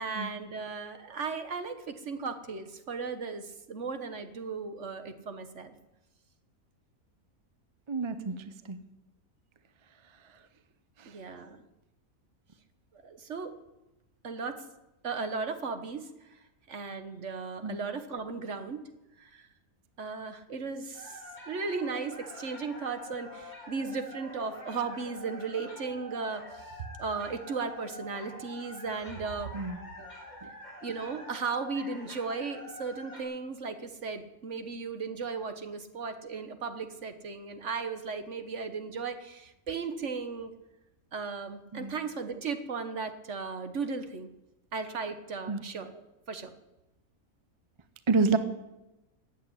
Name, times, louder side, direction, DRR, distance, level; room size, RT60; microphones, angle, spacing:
voice 1, 0.0-5.7 11.1-11.6 13.0-13.6 14.2-14.6 15.0-16.4 16.7-18.8 19.2-19.5 20.0-29.5 30.0-30.1 30.8-40.5 41.1-44.3 44.7-45.9 46.3-46.5, right 4 dB, 55° right, 9 dB, 1.5 m, -36 dB
voice 2, 7.9-8.8 17.6-17.8 29.5-29.8 41.7-41.9 45.5-45.6 48.1-48.4, right 4 dB, 25° right, 11 dB, 0.6 m, -28 dB
Howl Bark Whine, 20.9-33.2, equal, 30° left, 4.1 m, -46 dB
15.0 x 8.8 x 9.9 m, 0.98 s
omnidirectional pair, 1.5 m